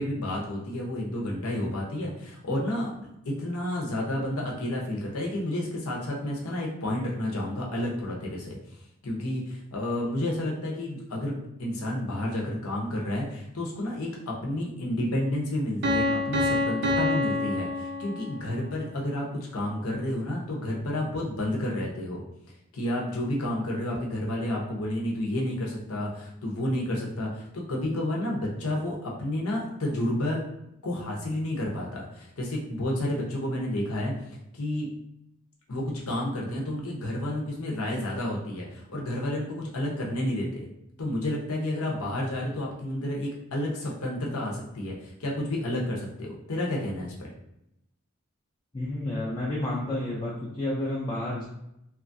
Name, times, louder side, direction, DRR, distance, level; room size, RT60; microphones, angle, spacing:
voice 1, 0.0-8.6 9.0-22.2 22.7-30.4 30.8-34.1 34.5-34.9 35.7-40.6 41.0-47.1, left 1 dB, 90° left, -2 dB, 0.8 m, -30 dB
Piano, 15.8-18.6, left 2 dB, 50° right, 0.4 m, -27 dB
voice 2, 48.7-51.4, left 1 dB, 20° left, -6 dB, 0.4 m, -30 dB
2.9 x 2.4 x 2.6 m, 0.81 s
head